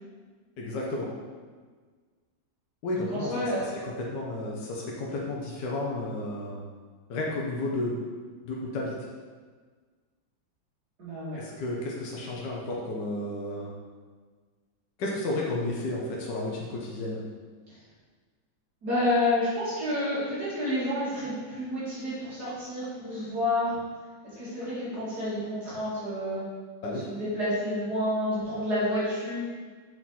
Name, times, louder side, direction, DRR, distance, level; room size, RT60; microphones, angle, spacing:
voice 1, 0.6-1.1 2.8-3.3 3.8-6.6 7.1-8.0 8.5-8.9 11.3-13.7 15.0-17.2 26.8-27.1, left 2 dB, 70° left, -3 dB, 1.4 m, -32 dB
voice 2, 2.9-3.7 11.0-11.4 18.8-23.7 24.4-26.4 26.8-29.4, left 1 dB, 60° right, -10 dB, 2.4 m, -29 dB
6.2 x 4.2 x 4.2 m, 1.5 s
omnidirectional pair, 2.0 m